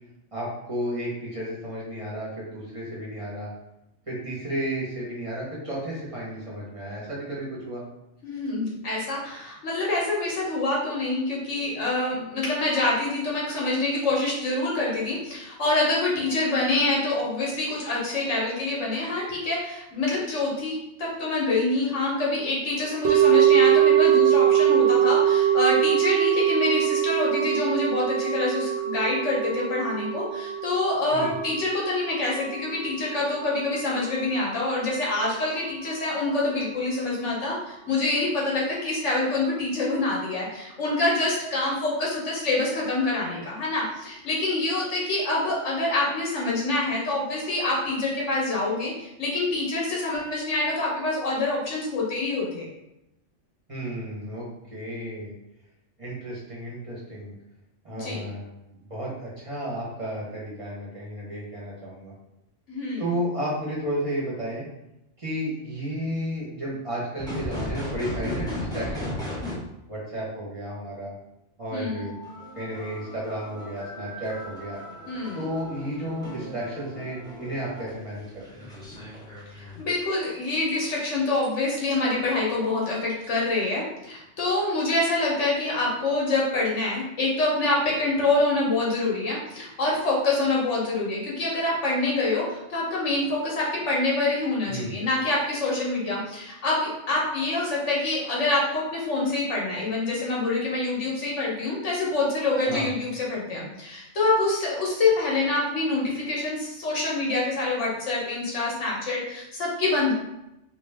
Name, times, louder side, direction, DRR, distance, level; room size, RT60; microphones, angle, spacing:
voice 1, 0.3-3.5 4.1-7.8 31.1-31.3 53.7-54.4 54.7-55.3 56.0-57.3 57.8-62.1 63.0-64.6 65.2-69.3 69.9-71.1 71.6-72.1 72.5-74.8 75.3-78.7 94.7-95.0 102.7-102.9, right 1 dB, 30° right, -6 dB, 1.2 m, -33 dB
voice 2, 8.2-52.7 57.9-58.3 62.7-63.0 71.7-72.1 75.1-75.4 79.5-110.1, left 2 dB, 80° left, -4 dB, 1.4 m, -26 dB
sound 1, 23.0-33.3 33.6-33.7, right 10 dB, 70° right, 1.0 m, -22 dB
sound 2, 67.2-69.5 71.7-79.8 80.2-81.4 81.9-82.1 82.8-82.9 83.1-83.5, left 1 dB, 5° left, 0.8 m, -37 dB
3.2 x 2.9 x 3.4 m, 0.88 s
omnidirectional pair, 1.2 m